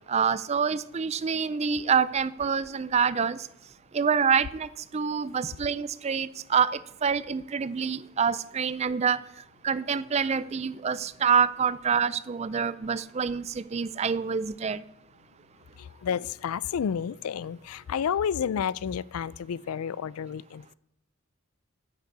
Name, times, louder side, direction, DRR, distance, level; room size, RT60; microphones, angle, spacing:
voice 1, 0.1-3.5 3.9-9.2 9.6-14.8, right 6 dB, 30° right, 17 dB, 0.4 m, -26 dB
voice 2, 15.8-20.7, left 7 dB, 85° left, 22 dB, 0.4 m, -30 dB
9.8 x 6.7 x 7.9 m, 0.82 s
head